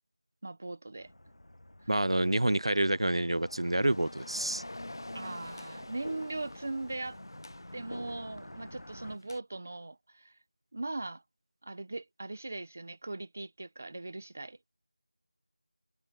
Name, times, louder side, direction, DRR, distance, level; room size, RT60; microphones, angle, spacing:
voice 1, 0.4-1.1 1.8-1.9 5.1-7.2 7.7-10.4 10.7-11.2 11.6-14.6, right 2 dB, 15° right, 0.7 m, -39 dB
Car passing by, 1.0-9.2, left 1 dB, 80° left, 7.8 m, -51 dB
voice 2, 1.9-4.6, right 1 dB, 60° right, 0.6 m, -28 dB
sound 1, 2.9-9.4, left 1 dB, 40° left, 0.9 m, -47 dB
figure-of-eight pair, 180°, 3 cm